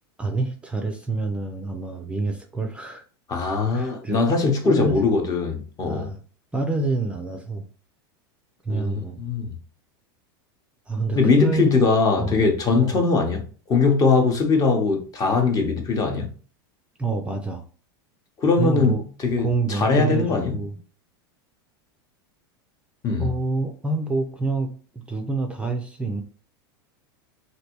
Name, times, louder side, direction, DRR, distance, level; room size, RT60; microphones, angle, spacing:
voice 1, 0.2-3.0 3.7-4.2 4.6-5.0 5.8-6.2 6.5-7.7 8.6-9.2 10.9-11.7 12.2-12.4 12.8-13.0 17.0-17.6 18.6-19.0 19.4-20.7 23.2-26.2, right 3 dB, 10° right, 0.4 m, -27 dB
voice 2, 3.3-6.1 8.7-9.5 11.1-16.3 18.4-20.6 23.0-23.3, left 4 dB, 30° left, 0.9 m, -21 dB
3.2 x 2.6 x 2.9 m
supercardioid pair, 120°, 12 cm